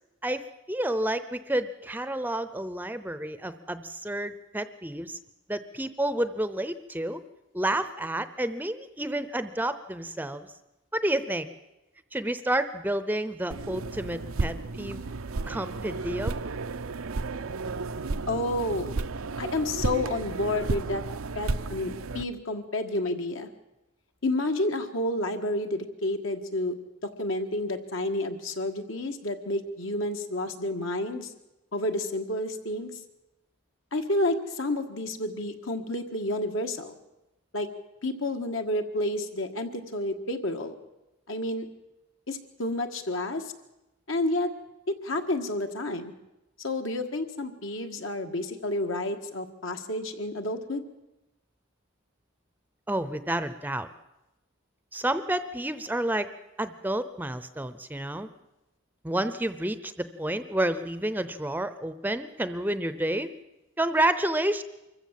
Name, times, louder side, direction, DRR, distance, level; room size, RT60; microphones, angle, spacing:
voice 1, 0.2-5.2 5.5-7.2 7.5-10.5 10.9-11.5 12.1-15.0 15.5-16.4 52.9-53.9 54.9-56.3 56.6-58.3 59.0-59.9 60.2-63.3 63.8-64.6, right 1 dB, 10° right, 12 dB, 0.6 m, -30 dB
sound 1, 13.5-22.2, right 3 dB, 85° right, 0.7 m, -33 dB
voice 2, 18.3-18.9 19.4-21.0 21.4-23.5 24.2-26.7 27.2-31.3 31.7-32.9 33.9-36.9 37.5-37.7 38.0-40.8 41.3-41.7 42.3-43.4 44.1-44.5 44.9-46.1 46.6-50.8, left 1 dB, 75° left, 5 dB, 1.8 m, -30 dB
24.5 x 15.0 x 7.6 m, 0.98 s
head